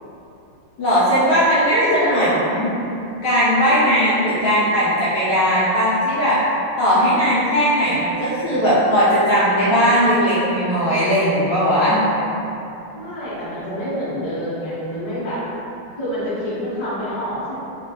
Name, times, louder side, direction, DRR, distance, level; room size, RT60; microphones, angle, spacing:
voice 1, 0.8-2.7 3.2-6.4 6.8-12.1, equal, 70° left, -11 dB, 1.1 m, -18 dB
voice 2, 1.5-2.3 3.6-4.1 12.9-15.4 16.0-17.5, equal, 30° left, -12 dB, 0.5 m, -26 dB
3.5 x 2.4 x 2.7 m, 2.8 s
omnidirectional pair, 2.4 m